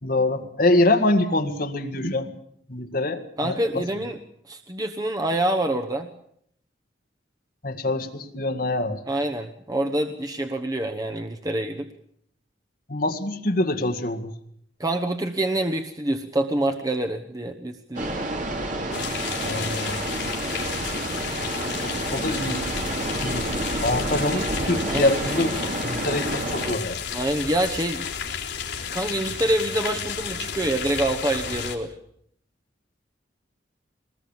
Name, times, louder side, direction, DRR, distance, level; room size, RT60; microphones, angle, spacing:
voice 1, 0.0-2.3 2.7-3.9 7.6-9.0 12.9-14.3 19.4-20.0 21.8-22.7 23.2-23.5 23.8-27.0, left 2 dB, 50° left, 7 dB, 1.9 m, -25 dB
voice 2, 3.4-4.2 4.5-6.1 9.1-11.9 14.8-18.2 24.9-25.1 27.1-28.1 28.9-31.9, right 1 dB, 20° right, 5 dB, 1.1 m, -26 dB
sound 1, 18.0-26.8, right 2 dB, 45° right, 3.0 m, -29 dB
sound 2, 18.9-31.8, left 7 dB, 70° left, 3.9 m, -32 dB
22.5 x 20.0 x 7.2 m, 0.69 s
head